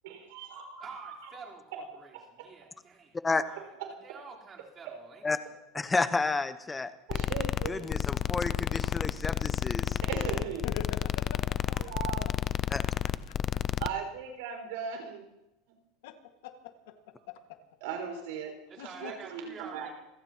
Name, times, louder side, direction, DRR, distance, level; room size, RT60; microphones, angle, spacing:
voice 1, 0.0-1.3 2.4-2.5 4.9-5.0 7.1-7.9 10.0-10.7 11.7-12.3 13.8-15.2 17.8-19.9, right 7 dB, 80° right, 3 dB, 5.3 m, -38 dB
voice 2, 0.8-3.2 3.4-5.4 18.7-19.9, right 5 dB, 30° right, -3 dB, 4.0 m, -49 dB
voice 3, 5.7-6.9 7.7-10.0 12.7-12.8, left 3 dB, 15° left, 12 dB, 0.9 m, -30 dB
sound 1, 7.1-13.9, left 10 dB, 35° left, 0.5 m, -31 dB
voice 4, 10.6-12.1 12.8-12.9 13.3-13.4 16.0-16.2 16.4-16.9 17.3-17.6 18.8-19.1, left 9 dB, 80° left, 6 dB, 1.8 m, -43 dB
27.0 x 16.5 x 3.0 m, 0.88 s
supercardioid pair, 130°, 0 cm